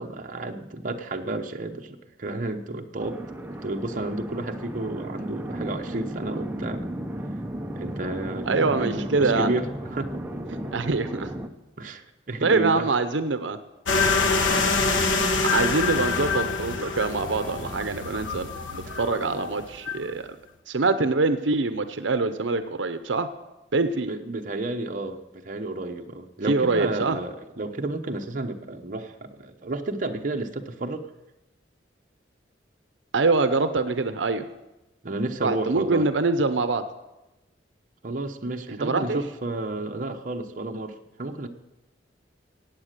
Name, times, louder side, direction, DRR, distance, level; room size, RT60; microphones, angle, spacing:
voice 1, 0.0-6.8 7.7-10.7 11.8-12.9 14.4-14.7 18.8-19.0 24.1-31.1 35.0-36.1 38.0-41.5, right 2 dB, 45° right, 4 dB, 0.9 m, -32 dB
sound 1, 3.0-11.5, right 1 dB, 10° right, 0.7 m, -34 dB
voice 2, 8.5-9.5 10.7-11.3 12.4-13.6 15.5-20.3 20.7-23.3 23.7-24.1 26.5-27.2 33.1-34.5 35.4-36.8 38.7-39.2, right 3 dB, 75° right, 10 dB, 0.7 m, -24 dB
sound 2, 13.9-20.0, left 4 dB, 80° left, 1.3 m, -25 dB
15.0 x 9.0 x 6.6 m, 1.0 s
head